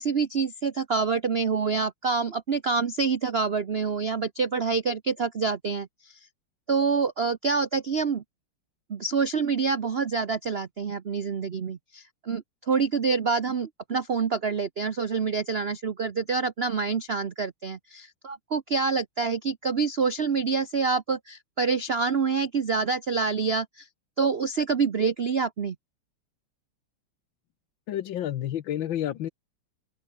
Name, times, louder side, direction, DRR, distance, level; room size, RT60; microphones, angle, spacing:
voice 1, 0.0-6.2 6.7-8.2 8.9-23.9 24.2-25.8, right 5 dB, 70° right, 0.6 m, -27 dB
voice 2, 27.9-29.3, left 11 dB, 65° left, 1.6 m, -30 dB
open air
omnidirectional pair, 2.4 m